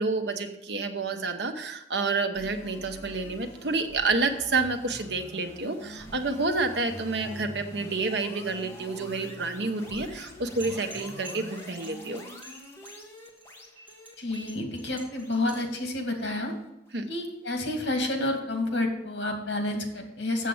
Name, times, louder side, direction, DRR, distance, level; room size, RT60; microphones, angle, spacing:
voice 1, 0.0-12.2 16.9-17.0, right 3 dB, 65° right, 6 dB, 1.0 m, -29 dB
sound 1, 2.3-17.5, equal, 15° left, 1.5 m, -45 dB
sound 2, 10.6-15.8, right 1 dB, 10° right, 2.6 m, -46 dB
voice 2, 14.2-16.5 17.1-20.5, left 2 dB, 80° left, 3 dB, 2.3 m, -29 dB
7.5 x 7.4 x 7.2 m, 0.88 s
head